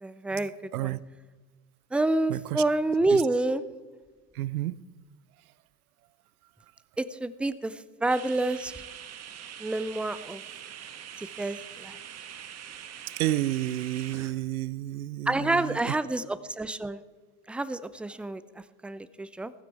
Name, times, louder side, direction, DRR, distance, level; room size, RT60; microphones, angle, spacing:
voice 1, 0.0-1.0 1.9-3.6 7.0-8.7 9.6-10.4 11.2-12.0 15.3-17.0 17.5-19.5, right 2 dB, 5° right, 15 dB, 0.4 m, -28 dB
voice 2, 2.3-2.6 3.1-3.2 4.3-4.8 13.1-16.0, right 15 dB, 70° right, 19 dB, 0.6 m, -30 dB
sound 1, 8.1-14.3, right 9 dB, 35° right, 1.5 m, -43 dB
16.0 x 15.0 x 4.6 m, 1.3 s
figure-of-eight pair, 70°, 45 cm